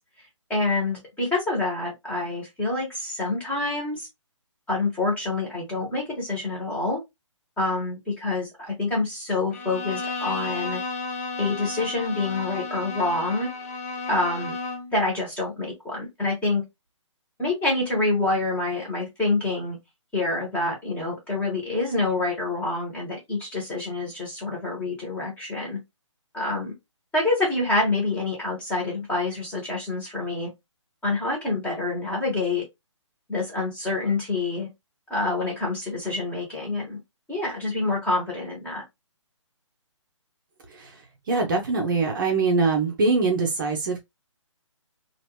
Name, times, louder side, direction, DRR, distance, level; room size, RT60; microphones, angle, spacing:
voice 1, 0.5-4.1 4.7-7.0 7.6-10.8 11.4-13.5 14.1-14.6 14.9-16.6 17.4-19.8 20.1-25.8 26.3-26.7 27.1-30.5 31.0-32.6 33.3-34.7 35.1-37.0 37.3-38.8, left 2 dB, 10° left, 1.3 m, -27 dB
Bowed string instrument, 9.5-15.0, left 3 dB, 30° left, 0.5 m, -33 dB
voice 2, 41.3-44.0, right 3 dB, 40° right, 0.7 m, -23 dB
3.0 x 2.5 x 3.1 m
figure-of-eight pair, 140°, 16 cm